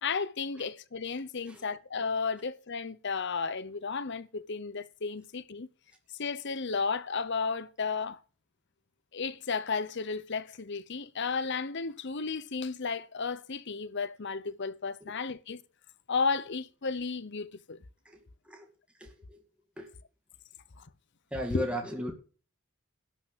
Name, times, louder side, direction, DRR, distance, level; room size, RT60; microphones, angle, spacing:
voice 1, 0.0-5.7 6.2-8.2 9.1-15.6 16.1-17.8 20.8-20.9 21.5-21.7, left 4 dB, 55° left, 0.8 m, -33 dB
voice 2, 19.0-19.4 19.8-19.9 21.3-22.1, equal, 5° right, 2.2 m, -35 dB
12.0 x 6.1 x 7.9 m
head